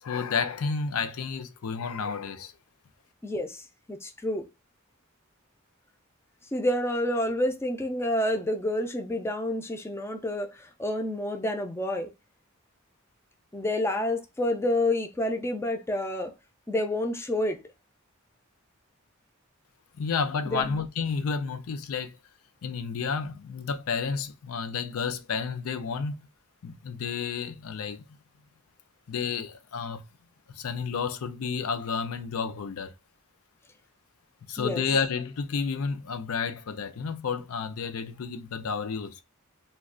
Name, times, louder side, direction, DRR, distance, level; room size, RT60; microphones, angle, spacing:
voice 1, 0.0-2.5 20.0-22.2 22.6-26.3 26.6-28.0 29.1-30.0 30.5-32.9 34.5-39.2, left 5 dB, 90° left, 0.4 m, -31 dB
voice 2, 3.2-4.5 6.5-12.1 13.5-16.3 16.7-17.6 20.5-20.8 34.5-34.8, left 1 dB, 10° left, 0.4 m, -29 dB
2.3 x 2.2 x 3.6 m
head